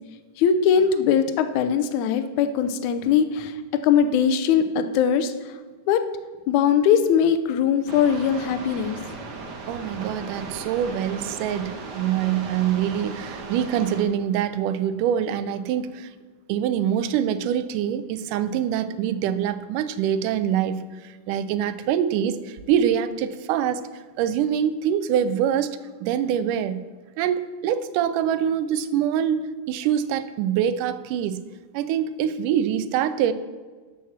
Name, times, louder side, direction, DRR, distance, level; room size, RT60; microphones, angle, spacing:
voice 1, 0.4-3.5 3.8-5.3 5.9-6.0 6.5-9.0, left 7 dB, 75° left, 10 dB, 2.1 m, -20 dB
sound 1, 7.9-14.0, right 4 dB, 65° right, 1.0 m, -37 dB
voice 2, 9.7-16.1 16.5-23.9 24.2-26.8 27.2-31.4 31.7-33.3, right 9 dB, 90° right, 13 dB, 2.2 m, -25 dB
12.0 x 5.8 x 7.2 m, 1.4 s
omnidirectional pair, 3.6 m